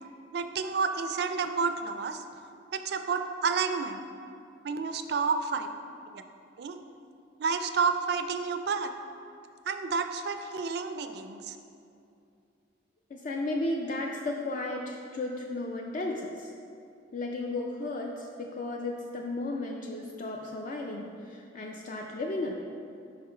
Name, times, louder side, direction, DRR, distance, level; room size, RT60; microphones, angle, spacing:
voice 1, 0.3-2.2 2.7-4.0 4.6-5.7 6.1-6.2 6.6-6.8 7.4-8.9 9.7-11.6, right 5 dB, 60° right, 8 dB, 0.4 m, -30 dB
voice 2, 13.1-16.5 17.1-22.8, left 2 dB, 45° left, 0 dB, 0.3 m, -34 dB
5.6 x 5.0 x 4.3 m, 2.6 s
head